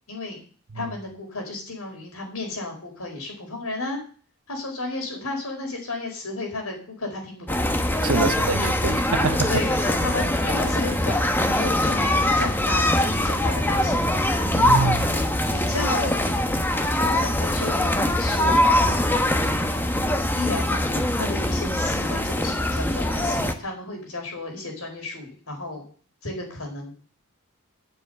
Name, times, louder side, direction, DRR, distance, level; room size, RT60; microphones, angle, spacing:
voice 1, 0.1-0.4 0.7-4.0 4.5-7.5 8.1-8.2 8.6-8.7 9.5-14.5 14.7-16.2 16.9-18.7 18.9-19.3 20.4-25.8 26.2-26.9, left 2 dB, 80° left, 4.8 m, -33 dB
sound 1, 7.5-23.5, left 1 dB, 10° left, 1.0 m, -22 dB
voice 2, 8.0-9.5 14.5-15.0, right 4 dB, 75° right, 0.8 m, -25 dB
10.5 x 7.1 x 8.0 m
head